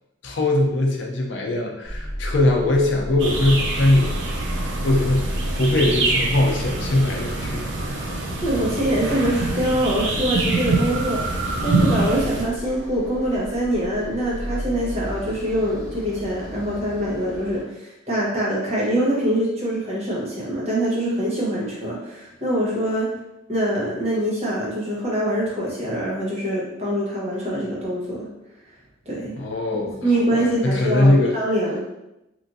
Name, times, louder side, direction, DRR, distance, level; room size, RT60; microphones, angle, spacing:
voice 1, 0.2-4.3 4.8-5.3 5.6-8.1 29.4-31.3, left 1 dB, 75° left, 1 dB, 0.5 m, -21 dB
sound 1, 1.8-17.6, equal, 5° left, 1.2 m, -33 dB
sound 2, 3.2-12.5, right 3 dB, 75° right, 0.5 m, -25 dB
voice 2, 8.4-23.1 23.5-28.3 29.0-29.3 30.0-31.8, right 1 dB, 35° right, -6 dB, 0.9 m, -24 dB
3.0 x 2.4 x 2.6 m, 0.89 s
head